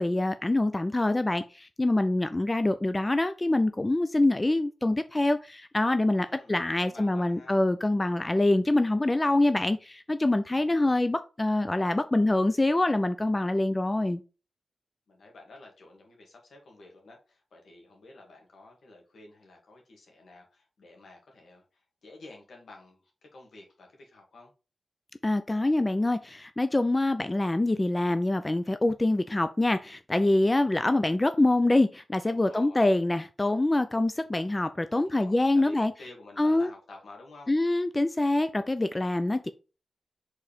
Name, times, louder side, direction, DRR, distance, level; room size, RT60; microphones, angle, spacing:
voice 1, 0.0-14.2 25.2-35.9 36.4-36.7 37.5-39.5, left 2 dB, 25° left, 0.5 m, -25 dB
voice 2, 6.2-7.6 15.1-23.0 23.3-24.5 32.2-32.9 34.9-37.5, left 2 dB, 75° left, 2.3 m, -51 dB
4.8 x 4.1 x 5.2 m
cardioid pair, 45°, 0 cm